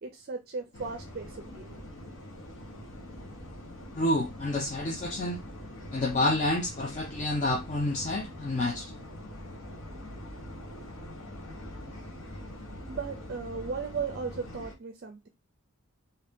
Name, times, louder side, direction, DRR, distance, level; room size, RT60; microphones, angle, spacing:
voice 1, 0.0-1.8 12.9-15.3, right 5 dB, 45° right, 0.4 m, -36 dB
sound 1, 0.7-14.7, left 1 dB, 70° left, 1.1 m, -43 dB
voice 2, 3.9-5.4 5.9-8.9, left 1 dB, 35° left, 0.5 m, -29 dB
2.7 x 2.7 x 3.4 m
head